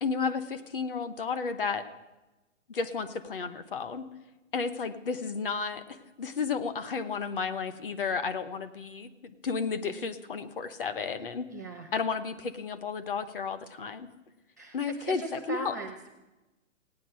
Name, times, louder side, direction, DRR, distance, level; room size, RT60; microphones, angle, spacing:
voice 1, 0.0-1.9 2.7-4.1 4.5-9.1 9.4-11.4 11.9-14.1 14.7-15.2 15.5-15.7, left 5 dB, 45° left, 11 dB, 1.0 m, -32 dB
voice 2, 11.5-11.9 14.6-16.1, right 2 dB, 15° right, 2 dB, 0.5 m, -39 dB
17.0 x 9.5 x 7.6 m, 1.1 s
hypercardioid pair, 175°, 39 cm